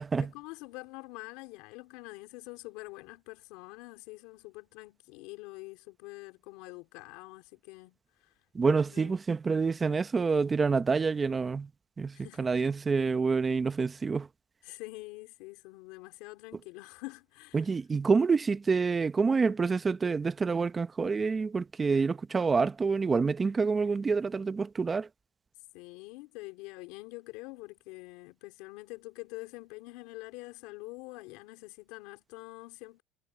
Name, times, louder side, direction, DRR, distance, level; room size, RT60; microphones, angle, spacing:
voice 1, 0.3-8.3 8.6-9.2 12.1-12.6 14.6-17.7 25.7-33.0, left 23 dB, 85° left, 3.5 m, -46 dB
voice 2, 8.5-11.7 12.0-14.3 17.5-25.1, right 4 dB, 25° right, 0.7 m, -27 dB
supercardioid pair, 110°, 0 cm